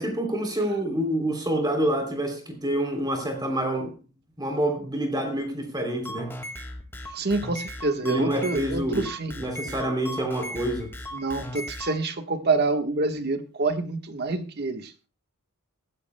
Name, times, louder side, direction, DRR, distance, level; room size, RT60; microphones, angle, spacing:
voice 1, 0.0-3.9 4.4-6.3 8.0-9.0 9.4-10.9, right 1 dB, 20° right, 3.1 m, -27 dB
sound 1, 5.9-12.0, equal, 10° left, 2.0 m, -37 dB
voice 2, 7.1-9.3 11.1-15.1, right 3 dB, 50° right, 1.3 m, -27 dB
18.0 x 14.5 x 2.2 m
head